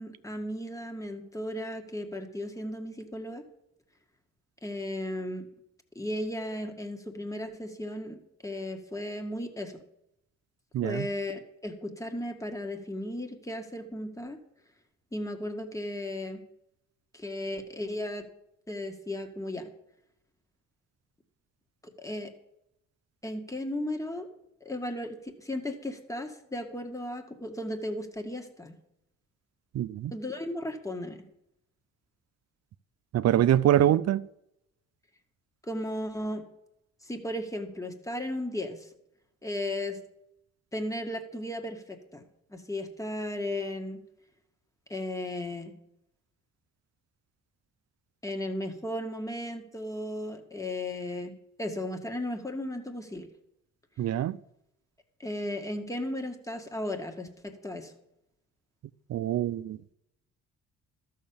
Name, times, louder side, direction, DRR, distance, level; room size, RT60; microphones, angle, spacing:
voice 1, 0.0-3.4 4.6-5.5 5.9-9.8 10.8-14.4 15.1-16.4 17.1-18.3 18.7-19.7 21.8-22.3 23.2-24.3 24.6-28.8 30.1-31.2 35.6-36.4 37.0-38.9 39.4-40.0 40.7-44.0 44.9-45.7 48.2-53.3 55.2-57.9, left 1 dB, 10° left, 1.8 m, -35 dB
voice 2, 10.7-11.1 29.7-30.1 33.1-34.2 54.0-54.4 59.1-59.8, right 11 dB, 60° right, 0.6 m, -24 dB
13.0 x 6.5 x 7.1 m
cardioid pair, 90°, 30 cm